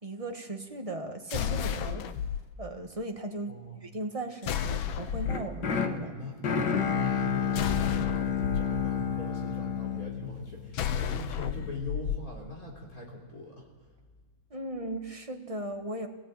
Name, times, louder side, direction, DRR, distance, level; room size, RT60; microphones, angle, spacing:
voice 1, 0.0-2.1 2.6-6.1 14.5-16.1, right 2 dB, 20° right, 4 dB, 1.3 m, -37 dB
big metallic robot footsteps, 1.3-2.4 4.4-5.5 7.5-8.6 10.7-12.2, left 9 dB, 85° left, 1.7 m, -32 dB
voice 2, 3.5-3.8 6.0-6.4 6.8-13.7, left 2 dB, 45° left, -2 dB, 4.0 m, -40 dB
sound 1, 5.3-11.4, left 7 dB, 60° left, 2.1 m, -30 dB
25.0 x 18.5 x 9.1 m, 1.4 s
omnidirectional pair, 2.1 m